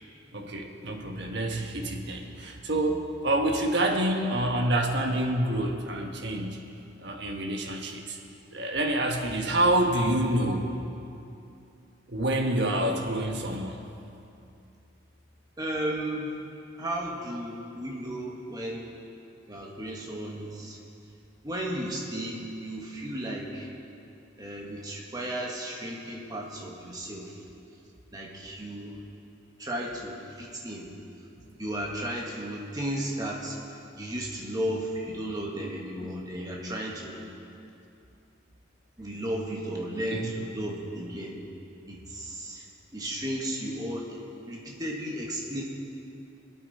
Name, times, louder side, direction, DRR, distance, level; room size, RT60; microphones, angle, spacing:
voice 1, 0.3-6.7 7.0-8.2 8.5-10.8 12.1-13.9 40.1-40.3, right 1 dB, 60° right, 2 dB, 1.3 m, -27 dB
voice 2, 15.6-16.3 16.8-18.9 19.5-20.8 21.4-23.7 24.4-27.3 28.1-29.0 29.6-30.9 31.6-37.2 39.0-41.4 41.9-42.7 42.9-45.6, right 1 dB, 20° right, -3 dB, 1.8 m, -34 dB
23.0 x 8.7 x 4.3 m, 2.6 s
head